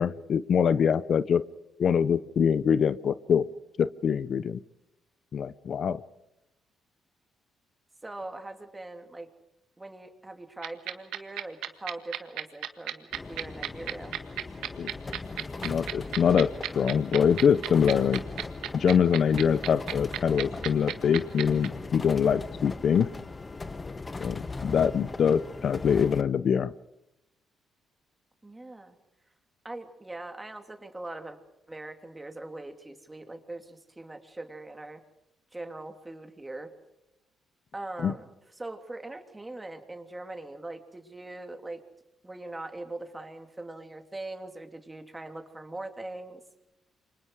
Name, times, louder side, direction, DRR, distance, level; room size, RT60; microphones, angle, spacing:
voice 1, 0.0-1.4 1.8-3.5 3.8-4.6 5.3-6.0 14.8-14.9 15.6-18.2 18.7-23.1 24.2-26.7 38.0-38.1, left 7 dB, 55° left, 16 dB, 0.7 m, -24 dB
voice 2, 8.0-9.3 9.8-14.1 24.6-25.0 28.4-29.0 29.6-31.4 31.7-35.0 35.5-36.7 37.7-38.3 38.5-41.8 42.2-46.4, right 2 dB, 15° right, 6 dB, 3.1 m, -41 dB
sound 1, 10.6-21.7, right 13 dB, 90° right, 1.7 m, -32 dB
sound 2, 13.1-26.2, left 3 dB, 25° left, 1.4 m, -39 dB
28.5 x 25.5 x 4.9 m, 0.88 s
cardioid pair, 90°, 0 cm